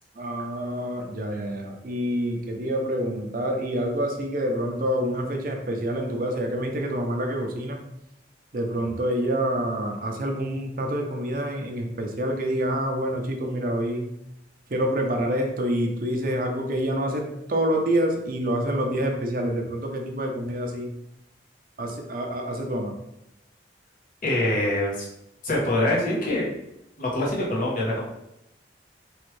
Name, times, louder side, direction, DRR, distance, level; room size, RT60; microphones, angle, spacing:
voice 1, 0.2-7.8 8.5-14.1 14.7-20.9 21.8-22.9, equal, 50° right, 2 dB, 0.5 m, -27 dB
voice 2, 24.2-25.1 25.4-26.5 27.0-28.0, left 1 dB, 45° left, -4 dB, 0.9 m, -24 dB
3.2 x 2.5 x 3.2 m, 0.84 s
head